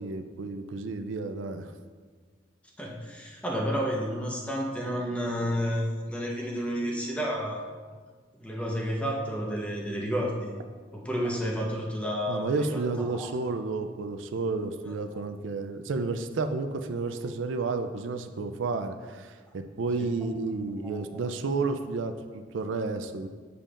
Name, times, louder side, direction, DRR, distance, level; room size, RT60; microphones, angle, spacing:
voice 1, 0.0-1.7 12.3-23.3, right 3 dB, 80° right, 8 dB, 0.4 m, -31 dB
voice 2, 2.8-7.7 8.4-10.5 10.9-13.3 20.0-20.1 20.8-21.2, equal, 5° left, -2 dB, 0.9 m, -31 dB
7.5 x 6.8 x 2.5 m, 1.5 s
head